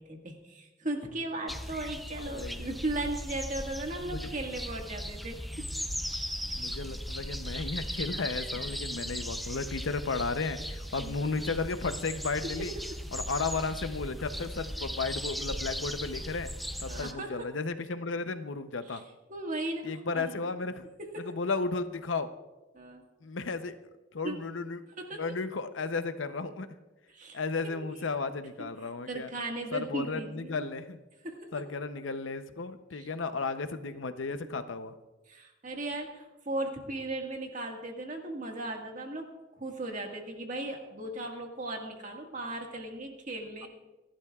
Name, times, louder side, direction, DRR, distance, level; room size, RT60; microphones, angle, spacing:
voice 1, 0.0-5.6 11.0-11.1 12.4-12.5 16.9-17.5 18.9-19.0 19.3-20.5 21.0-21.3 22.7-23.0 24.2-24.4 25.0-25.4 27.1-27.7 28.6-28.7 29.1-30.6 31.2-31.5 32.9-33.1 35.3-39.3 39.6-43.7, right 2 dB, 40° right, 2 dB, 1.7 m, -37 dB
sound 1, 1.5-17.1, equal, ahead, 0.5 m, -38 dB
voice 2, 2.1-2.7 4.1-4.3 6.6-12.7 13.1-16.5 16.8-19.0 19.8-20.9 21.2-22.3 23.2-23.7 24.1-24.8 25.2-26.7 27.3-29.3 29.7-31.0 31.5-34.9, left 4 dB, 80° left, 10 dB, 0.7 m, -34 dB
27.5 x 11.5 x 2.4 m, 1.1 s
head